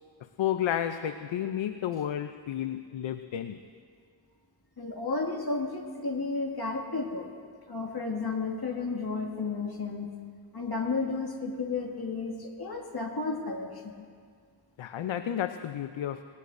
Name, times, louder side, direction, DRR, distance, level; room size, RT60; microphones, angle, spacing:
voice 1, 0.4-3.6 14.8-16.2, left 10 dB, 85° left, 10 dB, 0.6 m, -31 dB
voice 2, 4.8-7.3 7.7-10.1 10.5-14.0, left 3 dB, 55° left, 1 dB, 2.1 m, -32 dB
20.0 x 18.5 x 2.6 m, 2.1 s
cardioid pair, 45°, 45 cm